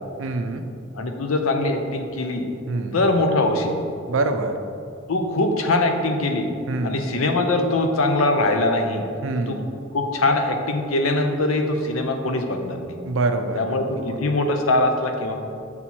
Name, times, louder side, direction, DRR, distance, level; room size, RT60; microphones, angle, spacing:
voice 1, 0.2-0.6 2.7-3.0 4.1-4.6 6.7-7.0 9.2-9.7 13.0-14.2, right 3 dB, 70° right, 7 dB, 0.5 m, -25 dB
voice 2, 0.9-2.5 2.9-3.8 5.1-6.5 6.8-9.0 9.5-9.6 9.9-13.0 13.5-15.4, left 2 dB, 90° left, 5 dB, 0.7 m, -22 dB
7.0 x 4.4 x 4.2 m, 2.4 s
head